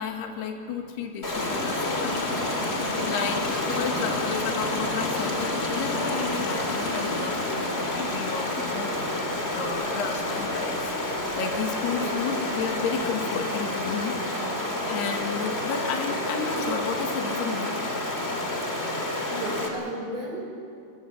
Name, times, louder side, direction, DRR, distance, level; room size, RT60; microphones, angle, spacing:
voice 1, 0.0-2.4 3.0-9.2 9.5-10.9 11.4-14.1 14.9-18.0, left 6 dB, 80° left, 3 dB, 3.8 m, -32 dB
Stream, 1.2-19.7, left 1 dB, 20° left, 2.2 m, -29 dB
sound 1, 1.3-13.1, left 3 dB, 35° left, 1.8 m, -34 dB
voice 2, 11.9-12.2 19.2-20.5, right 1 dB, 40° right, -1 dB, 6.4 m, -35 dB
22.0 x 22.0 x 8.3 m, 2.4 s
omnidirectional pair, 4.7 m